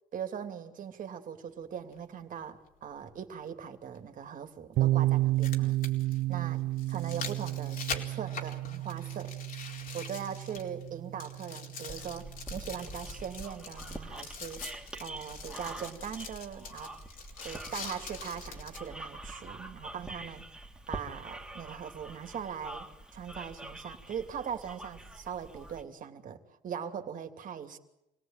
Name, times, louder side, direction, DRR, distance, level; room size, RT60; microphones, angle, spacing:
voice 1, 0.1-5.8 6.3-6.6 6.9-9.3 9.9-14.6 15.0-16.9 17.4-20.5 20.9-27.8, right 8 dB, 50° right, 6 dB, 3.0 m, -40 dB
sound 1, 1.9-2.0 4.0-4.1 5.2-10.9 11.2-18.9 19.5-19.6, left 5 dB, 55° left, 4.3 m, -44 dB
sound 2, 4.8-12.4, right 17 dB, 80° right, 1.0 m, -32 dB
sound 3, 11.9-25.8, right 1 dB, 5° right, 3.0 m, -45 dB
27.5 x 18.0 x 9.2 m, 0.87 s
cardioid pair, 110°, 17 cm